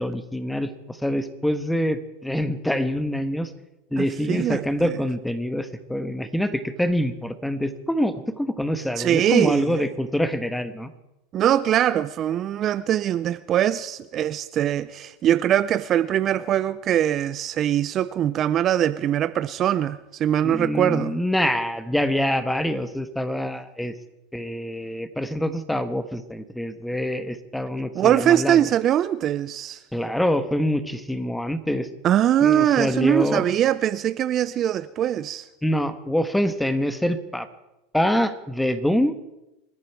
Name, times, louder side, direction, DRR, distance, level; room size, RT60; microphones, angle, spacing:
voice 1, 0.0-3.5 3.9-10.9 20.4-23.9 24.3-28.7 29.9-31.9 32.4-33.5 35.6-37.5 37.9-39.1, equal, 5° left, 1.4 m, -25 dB
voice 2, 4.0-4.9 9.0-9.8 11.3-21.1 27.9-29.8 32.0-35.5, right 11 dB, 40° right, 0.6 m, -22 dB
28.5 x 11.0 x 4.6 m
hypercardioid pair, 105°, 0 cm